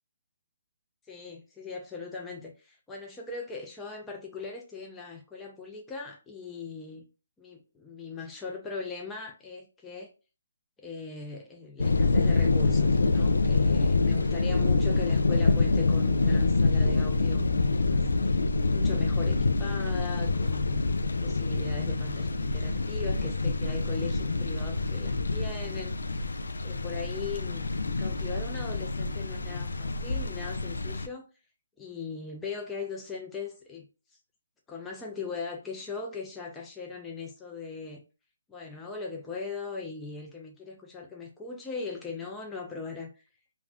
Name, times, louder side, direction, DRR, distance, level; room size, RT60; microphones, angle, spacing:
voice 1, 1.1-7.0 7.4-10.1 10.8-18.0 18.7-20.9 21.2-26.0 26.6-27.7 28.0-31.3 31.8-33.9 34.7-38.0 38.5-43.1, left 4 dB, 10° left, 0.4 m, -39 dB
sound 1, 11.8-31.1, left 3 dB, 90° left, 0.3 m, -26 dB
2.4 x 2.1 x 3.4 m
hypercardioid pair, 160°, 0 cm